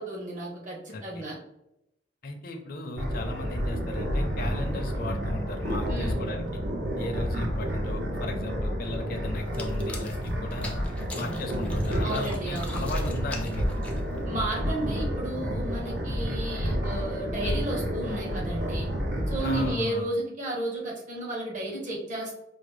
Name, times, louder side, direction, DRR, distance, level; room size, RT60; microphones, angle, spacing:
voice 1, 0.0-1.3 5.9-6.2 12.0-12.8 14.2-18.9 19.3-22.4, right 1 dB, 45° right, -2 dB, 1.0 m, -33 dB
voice 2, 0.9-1.2 2.2-6.4 7.0-10.8 11.1-13.8 19.4-20.1, left 2 dB, 55° left, 3 dB, 0.6 m, -36 dB
sound 1, 3.0-19.7, equal, 65° right, 0.8 m, -30 dB
sound 2, 9.4-14.3, left 2 dB, 5° left, 0.4 m, -42 dB
4.8 x 2.0 x 3.3 m, 0.84 s
head